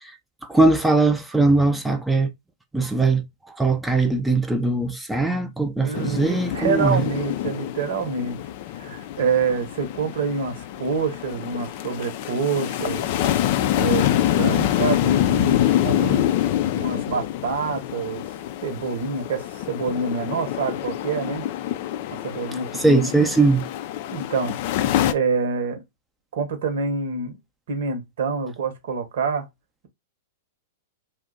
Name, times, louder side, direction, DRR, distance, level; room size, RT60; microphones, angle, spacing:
voice 1, 0.5-2.3 2.7-3.3 3.6-7.0 22.8-23.6, right 3 dB, 5° right, 0.5 m, -20 dB
voice 2, 5.8-8.4 8.7-13.1 13.8-18.3 18.6-21.5 22.1-23.3 24.1-24.6 25.1-25.8 26.3-27.4 27.7-29.4, right 5 dB, 65° right, 0.9 m, -27 dB
sound 1, 5.9-25.1, left 12 dB, 50° left, 0.3 m, -26 dB
2.5 x 2.1 x 3.7 m
hypercardioid pair, 105°, 0 cm